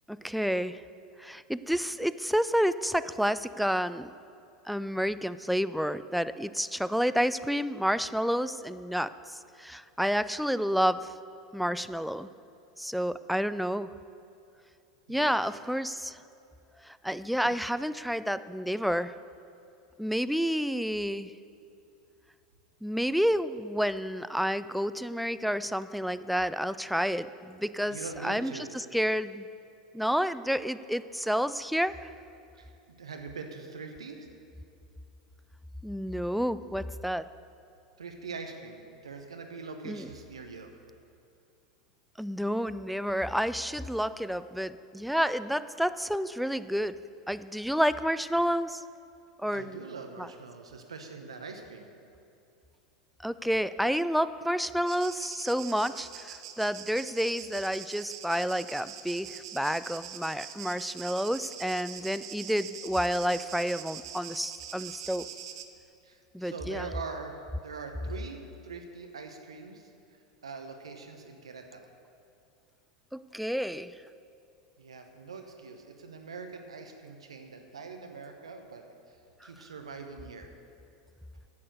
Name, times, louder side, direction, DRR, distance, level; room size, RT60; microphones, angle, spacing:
voice 1, 0.1-0.8 1.2-4.1 4.7-11.1 11.5-12.3 12.8-13.9 15.1-16.2 16.8-19.2 20.0-21.3 22.8-29.5 29.9-32.1 35.8-37.3 39.9-40.1 42.2-48.8 49.4-49.8 50.2-50.3 53.2-65.3 66.3-66.9 73.1-73.9 79.4-79.5, equal, ahead, 14 dB, 0.3 m, -30 dB
voice 2, 15.1-15.6 17.3-17.4 27.8-28.7 32.6-34.3 38.0-40.7 49.5-51.9 66.0-71.9 74.8-80.5, right 4 dB, 75° right, 5 dB, 1.0 m, -43 dB
sound 1, 54.9-65.6, right 9 dB, 60° right, 0.8 m, -43 dB
10.5 x 8.6 x 6.7 m, 2.6 s
figure-of-eight pair, 85°, 3 cm